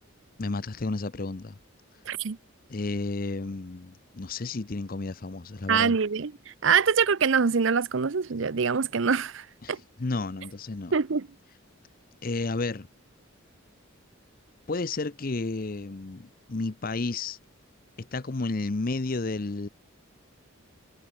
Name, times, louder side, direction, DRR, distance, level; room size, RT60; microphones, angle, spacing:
voice 1, 0.4-1.6 2.7-6.0 9.6-10.9 12.2-12.9 14.7-17.4 18.0-19.7, left 3 dB, 40° left, 0.7 m, -32 dB
voice 2, 2.1-2.4 5.7-6.3 6.6-9.8 10.9-11.3, right 6 dB, 65° right, 0.6 m, -24 dB
head